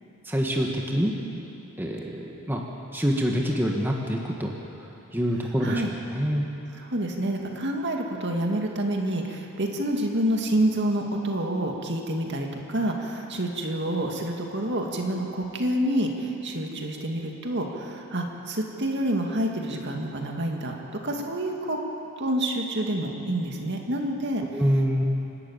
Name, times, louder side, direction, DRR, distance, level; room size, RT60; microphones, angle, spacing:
voice 1, 0.2-1.1 1.8-2.6 2.9-4.5 5.1-5.8 6.1-6.5 24.5-25.0, equal, 10° right, -1 dB, 1.6 m, -25 dB
voice 2, 6.7-20.8 21.0-21.8 22.2-24.4, right 1 dB, 50° right, 1 dB, 2.3 m, -28 dB
28.5 x 12.0 x 8.9 m, 2.9 s
head